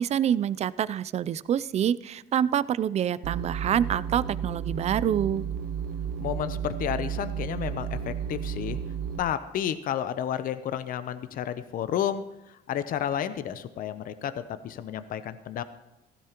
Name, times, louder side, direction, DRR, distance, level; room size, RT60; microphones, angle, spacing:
voice 1, 0.0-5.4, right 9 dB, 40° right, 18 dB, 0.4 m, -26 dB
sound 1, 3.2-9.2, right 7 dB, 90° right, 0.8 m, -33 dB
voice 2, 6.2-8.8 9.2-12.2 12.5-15.6, left 10 dB, 55° left, 12 dB, 0.7 m, -31 dB
16.0 x 13.5 x 3.0 m, 0.92 s
cardioid pair, 110°, 17 cm